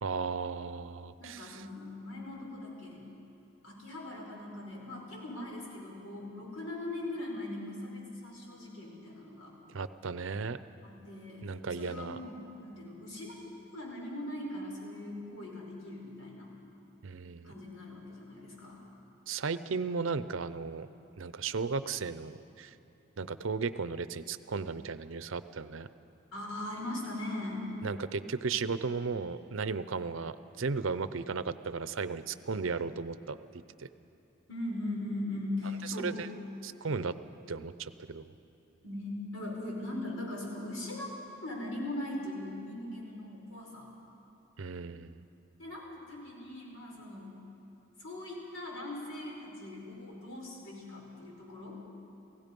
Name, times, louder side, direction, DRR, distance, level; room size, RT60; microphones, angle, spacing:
voice 1, 0.0-1.6 9.7-10.6 11.4-12.2 17.0-17.5 19.3-20.9 21.2-22.7 23.2-25.9 27.8-33.4 33.8-33.9 36.0-36.3 36.6-37.1 37.5-38.3 44.6-45.2, right 4 dB, 70° right, 14 dB, 0.6 m, -35 dB
voice 2, 1.2-3.0 3.6-9.5 10.8-13.4 13.7-16.5 17.4-18.8 26.3-27.6 34.5-36.2 38.8-41.1 41.4-43.9 45.6-47.4 48.0-51.8, left 1 dB, 80° left, -2 dB, 5.1 m, -40 dB
29.5 x 16.5 x 5.3 m, 2.9 s
head